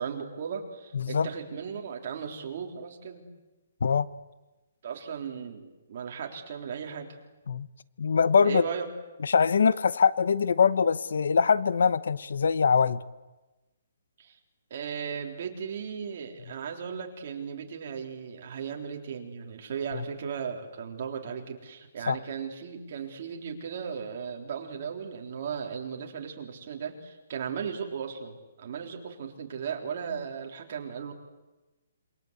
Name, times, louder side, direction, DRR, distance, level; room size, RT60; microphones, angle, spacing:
voice 1, 0.0-3.2 4.8-7.2 8.4-8.9 14.2-14.4 14.7-31.1, right 7 dB, 35° right, 2 dB, 3.7 m, -36 dB
voice 2, 0.9-1.3 3.8-4.1 7.5-7.7 8.0-8.6 9.2-13.0 22.1-22.2, left 6 dB, 65° left, 17 dB, 0.9 m, -23 dB
27.5 x 24.5 x 8.2 m, 1.1 s
hypercardioid pair, 175°, 0 cm